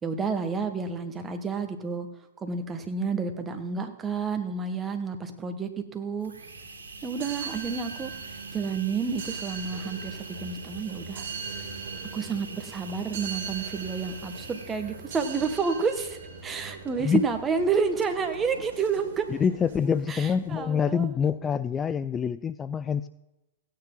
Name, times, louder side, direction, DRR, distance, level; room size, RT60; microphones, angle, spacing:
voice 1, 0.0-2.1 2.4-6.3 7.0-8.1 8.5-11.3 12.1-19.3 20.1-21.1, right 5 dB, 20° right, 7 dB, 1.6 m, -30 dB
sound 1, 6.1-15.6, right 3 dB, 85° right, 2.2 m, -43 dB
sound 2, 7.1-20.6, right 5 dB, 65° right, 2.6 m, -41 dB
voice 2, 19.4-23.1, left 7 dB, 20° left, 15 dB, 0.4 m, -26 dB
16.0 x 9.6 x 3.9 m, 0.99 s
hypercardioid pair, 115°, 0 cm